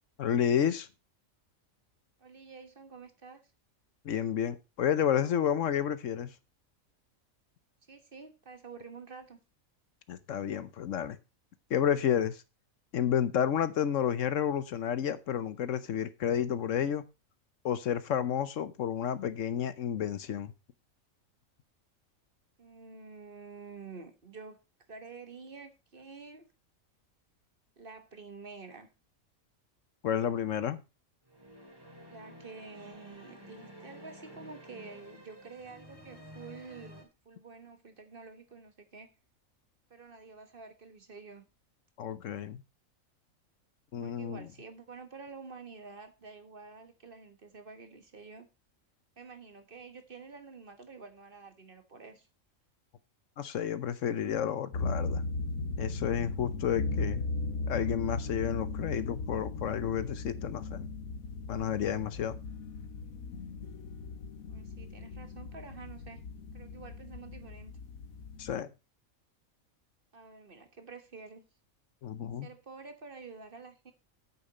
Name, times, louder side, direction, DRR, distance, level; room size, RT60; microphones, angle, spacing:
voice 1, 0.2-0.9 4.0-6.3 10.1-11.2 11.7-12.4 12.9-17.0 17.6-20.5 30.0-30.8 42.0-42.6 43.9-44.4 53.4-55.2 55.8-57.2 57.7-60.9 61.5-62.4 68.4-68.7 72.0-72.5, left 9 dB, 70° left, 1.1 m, -31 dB
voice 2, 2.2-3.5 7.9-9.4 22.6-24.6 24.9-26.5 27.8-28.9 32.1-39.1 39.9-41.5 44.0-48.5 49.2-52.3 64.5-66.2 66.5-67.7 70.1-71.4 72.4-73.9, right 4 dB, 40° right, 1.5 m, -49 dB
sound 1, 31.2-37.0, equal, 15° right, 2.6 m, -51 dB
sound 2, 54.7-68.6, left 3 dB, 85° left, 1.4 m, -37 dB
8.8 x 7.0 x 5.4 m
omnidirectional pair, 1.4 m